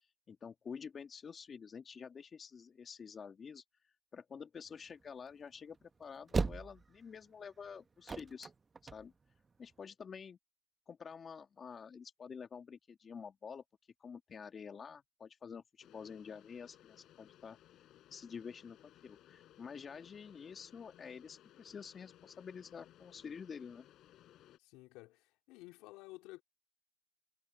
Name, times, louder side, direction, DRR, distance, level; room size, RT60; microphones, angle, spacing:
voice 1, 0.3-3.6 4.1-8.5 8.9-9.1 9.6-10.4 10.9-13.6 14.0-17.6 18.1-18.8 19.0-23.9, left 6 dB, 35° left, 1.8 m, -49 dB
sound 1, 4.7-9.8, right 4 dB, 25° right, 1.2 m, -38 dB
sound 2, 15.8-24.6, left 13 dB, 60° left, 4.9 m, -62 dB
voice 2, 24.6-26.4, left 20 dB, 75° left, 3.4 m, -53 dB
supercardioid pair, 85°, 0 cm